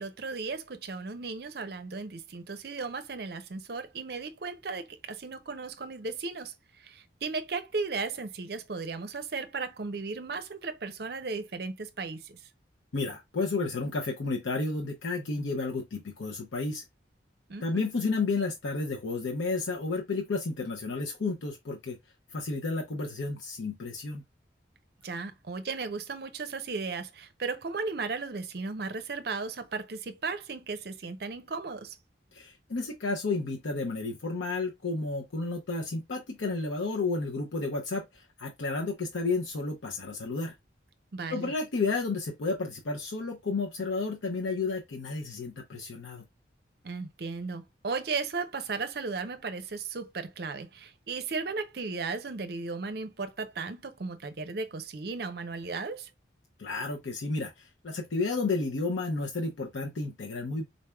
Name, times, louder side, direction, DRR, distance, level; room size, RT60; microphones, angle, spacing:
voice 1, 0.0-6.5 6.8-12.4 17.5-17.8 25.0-31.9 41.1-41.5 46.8-56.1, right 4 dB, 55° right, 0.5 m, -35 dB
voice 2, 12.9-16.8 17.6-22.0 22.3-24.2 32.3-40.5 41.3-46.2 56.6-60.6, left 3 dB, 90° left, 0.6 m, -32 dB
4.0 x 3.3 x 2.2 m
head